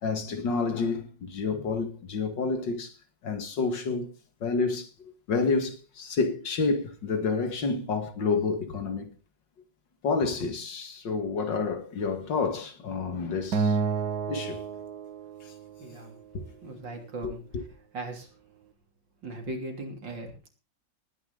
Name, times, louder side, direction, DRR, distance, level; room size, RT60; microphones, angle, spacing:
voice 1, 0.0-3.0 3.2-4.1 4.4-9.1 10.0-13.8 14.3-14.7 15.4-15.5 16.3-16.5 17.2-17.6, left 4 dB, 80° left, 2.6 m, -29 dB
Acoustic guitar, 13.5-15.9, right 5 dB, 60° right, 1.5 m, -30 dB
voice 2, 15.8-16.1 16.6-17.4 17.9-18.3 19.2-20.5, right 2 dB, 85° right, 3.9 m, -38 dB
19.5 x 10.0 x 3.9 m
omnidirectional pair, 1.9 m